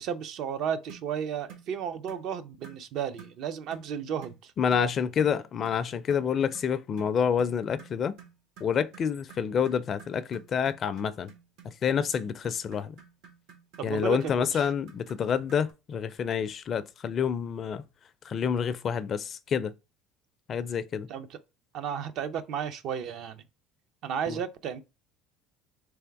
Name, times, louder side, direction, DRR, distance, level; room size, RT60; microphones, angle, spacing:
voice 1, 0.0-4.5 13.8-14.7 21.1-21.4 21.7-23.4 24.0-24.8, right 8 dB, 60° right, 0.5 m, -33 dB
sound 1, 0.9-1.1 1.5-1.7 2.1-2.3 2.6-2.8 3.2-3.4 3.7-3.9 4.2-4.4 4.7-4.9 5.2-5.4 5.7-5.8 6.1-15.7, right 7 dB, 75° right, 1.1 m, -51 dB
voice 2, 4.6-8.2 8.6-11.3 11.6-13.0 13.8-17.8 18.2-19.7 20.5-21.1 24.3-24.4, left 7 dB, 40° left, 0.4 m, -28 dB
3.4 x 3.3 x 4.6 m
supercardioid pair, 110°, 0 cm